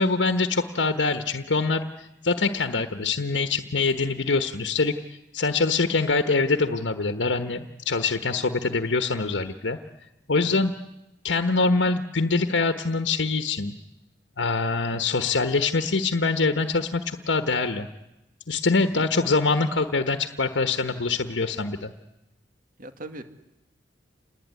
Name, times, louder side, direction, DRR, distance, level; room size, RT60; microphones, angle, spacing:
voice 1, 0.0-4.9 5.3-9.8 10.3-10.7 11.2-13.7 14.4-17.9 18.5-21.9, left 3 dB, 85° left, 8 dB, 1.3 m, -24 dB
voice 2, 22.8-23.2, right 2 dB, 50° right, 8 dB, 2.2 m, -40 dB
28.0 x 20.5 x 9.6 m, 0.93 s
head